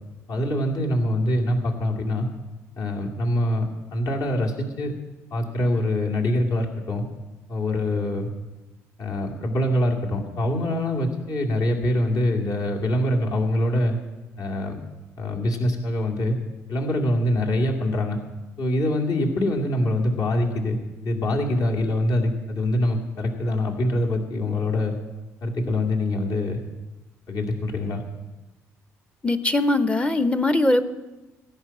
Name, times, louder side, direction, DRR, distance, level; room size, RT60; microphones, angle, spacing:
voice 1, 0.3-2.3 2.8-3.6 3.9-4.9 5.3-7.0 7.5-8.3 9.0-14.0 14.4-14.8 15.2-16.4 16.7-18.2 18.6-20.8 21.0-24.9 25.4-26.6 27.3-28.0, left 1 dB, 50° left, 0 dB, 2.2 m, -24 dB
voice 2, 29.2-30.9, left 2 dB, 15° left, 12 dB, 0.9 m, -21 dB
16.0 x 6.0 x 8.8 m, 1.1 s
figure-of-eight pair, 45°, 8 cm